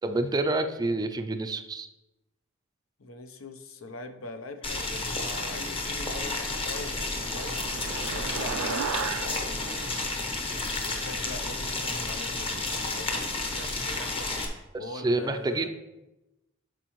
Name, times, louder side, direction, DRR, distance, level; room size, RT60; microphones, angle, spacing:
voice 1, 0.0-1.9 14.7-15.7, right 2 dB, 20° right, 8 dB, 0.4 m, -28 dB
voice 2, 3.0-7.6 8.1-9.8 10.8-14.3 14.8-15.7, left 2 dB, 80° left, 8 dB, 0.7 m, -42 dB
Boiling, 4.6-14.5, left 2 dB, 25° left, 0.9 m, -31 dB
sound 1, 6.4-11.1, right 7 dB, 90° right, 0.3 m, -37 dB
11.5 x 4.6 x 3.0 m, 0.97 s
head